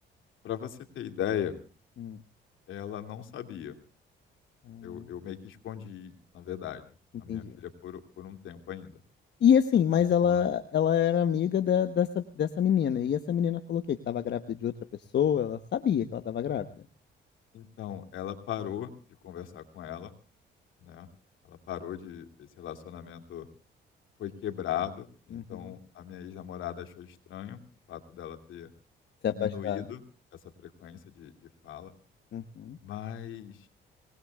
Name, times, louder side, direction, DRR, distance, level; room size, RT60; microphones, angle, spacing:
voice 1, 0.4-1.6 2.7-3.8 4.8-6.8 7.2-9.0 10.2-10.5 17.5-18.9 19.2-20.1 20.8-21.1 21.4-22.3 22.6-23.5 24.2-27.6 27.9-28.7 29.3-30.0 30.3-31.3 31.6-31.9 32.8-33.7, left 10 dB, 80° left, 7 dB, 2.7 m, -38 dB
voice 2, 4.7-5.0 7.3-7.5 9.4-14.7 15.1-16.6 25.5-25.6 29.2-29.8 32.3-32.8, left 9 dB, 60° left, 9 dB, 1.1 m, -26 dB
26.0 x 19.5 x 2.4 m, 0.36 s
cardioid pair, 90°, 20 cm